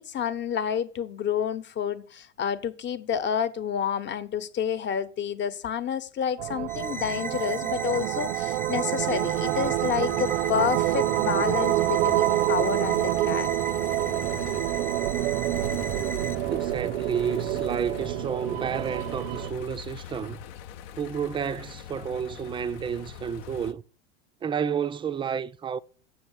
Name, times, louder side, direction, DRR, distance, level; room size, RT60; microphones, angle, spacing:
voice 1, 0.0-13.5, left 8 dB, 35° left, 1.0 m, -29 dB
sound 1, 6.4-19.5, right 16 dB, 70° right, 0.5 m, -27 dB
sound 2, 6.7-16.4, right 2 dB, 5° left, 0.9 m, -38 dB
sound 3, 9.0-23.7, left 9 dB, 60° left, 0.7 m, -42 dB
voice 2, 16.5-20.4 21.0-23.8 24.4-25.8, right 7 dB, 15° right, 0.4 m, -30 dB
7.5 x 6.6 x 8.1 m
hypercardioid pair, 95°, 33 cm